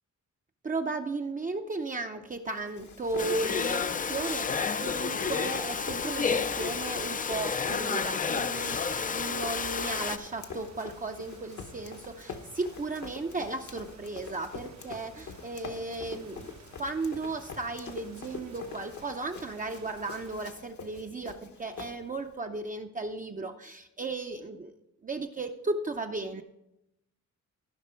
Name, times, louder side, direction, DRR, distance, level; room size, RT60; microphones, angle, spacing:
voice 1, 0.6-16.5 16.8-24.7 25.0-26.4, right 3 dB, 25° right, 4 dB, 0.5 m, -35 dB
Run, 2.5-22.3, left 5 dB, 70° left, 1.1 m, -45 dB
sound 1, 3.0-20.5, right 6 dB, 60° right, 0.8 m, -54 dB
Domestic sounds home sounds, 3.2-10.2, left 5 dB, 30° left, 0.4 m, -30 dB
14.5 x 5.8 x 4.4 m, 0.86 s
wide cardioid pair, 135°, 31 cm